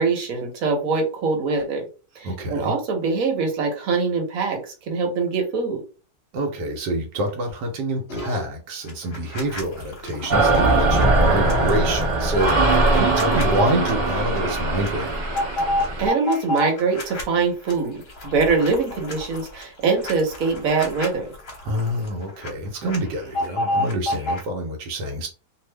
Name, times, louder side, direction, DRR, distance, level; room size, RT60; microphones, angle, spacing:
voice 1, 0.0-1.8 2.2-5.8 16.0-21.3, right 4 dB, 60° right, 3 dB, 1.2 m, -23 dB
voice 2, 2.2-2.7 6.3-15.1 21.6-25.3, right 1 dB, 80° right, 2 dB, 1.3 m, -27 dB
sound 1, 8.1-8.5 8.9-13.9 14.3-14.5 14.7-17.2 17.6-22.5 22.8-24.4, left 1 dB, 45° left, 0.9 m, -30 dB
sound 2, 10.3-16.1, right 2 dB, 30° right, 1.1 m, -20 dB
2.6 x 2.5 x 3.2 m, 0.36 s
omnidirectional pair, 1.8 m